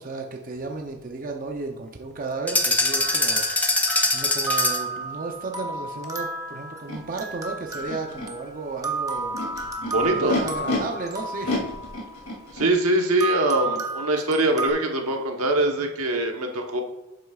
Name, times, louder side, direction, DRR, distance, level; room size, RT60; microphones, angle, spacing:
voice 1, 0.0-9.4 10.0-11.6, right 3 dB, 40° right, 2 dB, 0.6 m, -34 dB
sound 1, 2.5-5.0, left 2 dB, 5° left, 0.5 m, -23 dB
sound 2, 2.9-12.6 13.2-14.7, right 3 dB, 15° right, 0.9 m, -32 dB
Animal, 6.9-7.0 7.8-8.3 9.1-10.8 11.4-12.7, left 2 dB, 80° left, 2.8 m, -30 dB
voice 2, 9.9-10.4 12.5-16.8, right 1 dB, 80° right, 3 dB, 1.2 m, -23 dB
10.5 x 8.0 x 2.4 m, 1.1 s
head